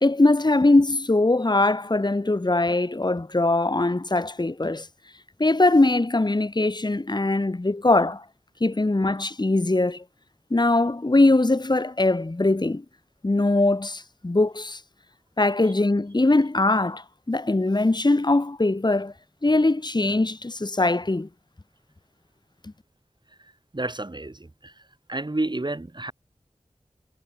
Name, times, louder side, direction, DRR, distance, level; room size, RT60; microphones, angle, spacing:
voice 1, 0.0-4.9 5.4-8.2 8.6-10.0 10.5-12.8 13.2-14.8 15.4-19.1 19.4-21.3, left 2 dB, 35° left, 1.6 m, -21 dB
voice 2, 23.4-24.8 25.1-26.1, right 2 dB, 40° right, 2.5 m, -31 dB
wide cardioid pair, 55°, 12 cm